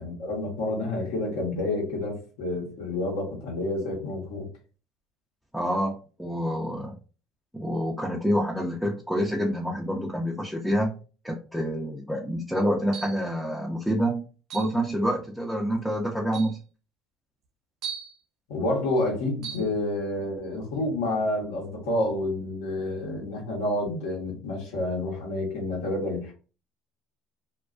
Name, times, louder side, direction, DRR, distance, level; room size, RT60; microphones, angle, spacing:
voice 1, 0.0-4.5 18.5-26.3, left 2 dB, 85° left, -2 dB, 0.9 m, -29 dB
voice 2, 5.5-5.9 6.2-6.9 7.5-11.0 11.2-14.2 14.5-16.6, equal, 5° left, -1 dB, 0.5 m, -27 dB
sound 1, 12.9-13.3 14.5-14.8 15.7-15.8 16.3-16.6 17.8-18.2 19.4-19.7, right 7 dB, 55° right, 0.5 m, -37 dB
2.3 x 2.2 x 2.4 m, 0.36 s
supercardioid pair, 80°, 0 cm